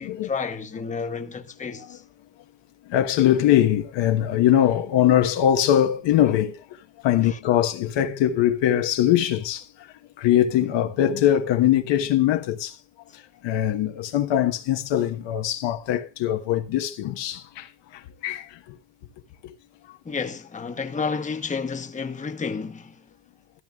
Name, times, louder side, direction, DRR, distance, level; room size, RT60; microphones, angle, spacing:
voice 1, 0.0-2.0 7.2-7.4 20.0-23.0, left 5 dB, 15° left, 1.1 m, -31 dB
voice 2, 2.9-6.6 7.0-9.9 10.2-12.7 13.1-18.8 19.4-19.5, left 11 dB, 70° left, 1.3 m, -22 dB
14.5 x 12.0 x 2.4 m
cardioid pair, 135°, 45 cm